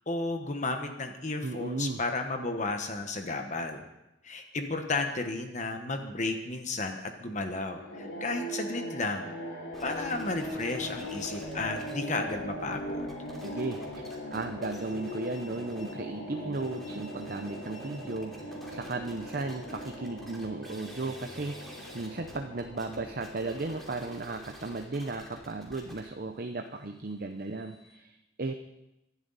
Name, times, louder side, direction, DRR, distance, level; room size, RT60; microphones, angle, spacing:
voice 1, 0.1-3.9 4.2-9.3 9.8-13.1, left 3 dB, 40° left, 5 dB, 1.3 m, -33 dB
voice 2, 1.4-2.0 13.4-28.5, right 3 dB, 50° right, 6 dB, 0.7 m, -35 dB
sound 1, 7.7-24.3, equal, 70° left, 7.1 m, -40 dB
sound 2, 9.7-11.9 12.2-16.0 16.4-28.0, equal, ahead, 3.0 m, -50 dB
24.5 x 11.5 x 4.1 m, 0.91 s
head